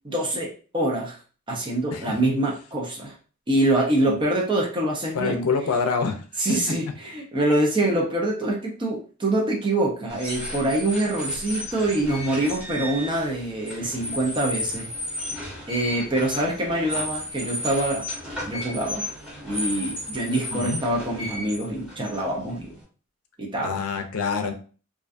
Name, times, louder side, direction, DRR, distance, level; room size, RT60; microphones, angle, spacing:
voice 1, 0.0-1.2 1.5-3.1 3.5-5.5 6.4-14.9 15.7-18.0 18.5-19.0 19.4-22.8 23.4-23.8, right 1 dB, 20° right, -2 dB, 0.5 m, -25 dB
voice 2, 1.9-2.3 4.0-4.2 5.1-6.7 20.5-20.8 23.6-24.5, left 5 dB, 80° left, 6 dB, 0.5 m, -27 dB
sound 1, 10.1-22.8, left 1 dB, 5° right, 0.9 m, -34 dB
2.4 x 2.2 x 2.5 m, 0.38 s
head